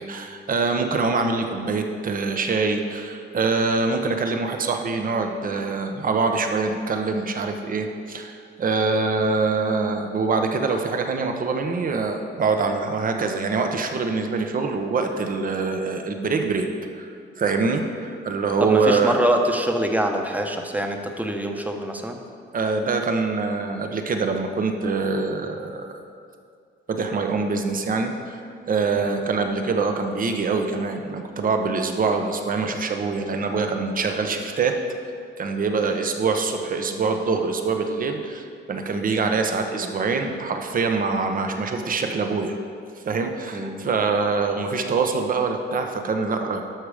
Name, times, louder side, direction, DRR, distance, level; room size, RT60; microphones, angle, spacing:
voice 1, 0.0-16.7 16.9-19.1 22.5-26.0 26.9-28.4 28.7-34.8 35.4-42.6 43.0-46.6, right 4 dB, 45° right, 5 dB, 1.1 m, -24 dB
voice 2, 18.6-22.2 29.0-29.2 43.5-43.8, right 1 dB, 10° right, 4 dB, 1.1 m, -24 dB
12.5 x 6.2 x 5.1 m, 2.3 s
cardioid pair, 90°, 20 cm